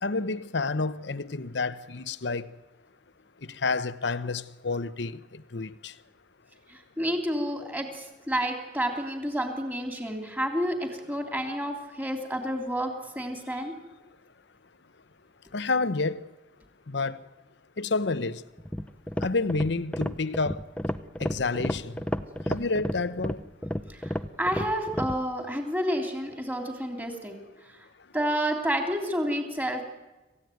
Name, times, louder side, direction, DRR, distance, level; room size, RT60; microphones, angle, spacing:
voice 1, 0.0-2.5 3.5-5.9 15.5-16.3 16.9-17.2 17.8-18.4 19.2-20.6 21.2-22.0 22.5-23.4, left 3 dB, 70° left, 0.9 m, -29 dB
voice 2, 6.7-13.8 23.9-27.3 28.1-29.8, equal, 10° right, 3.3 m, -30 dB
sound 1, 18.6-25.2, equal, 5° left, 0.7 m, -32 dB
26.5 x 15.5 x 9.4 m
head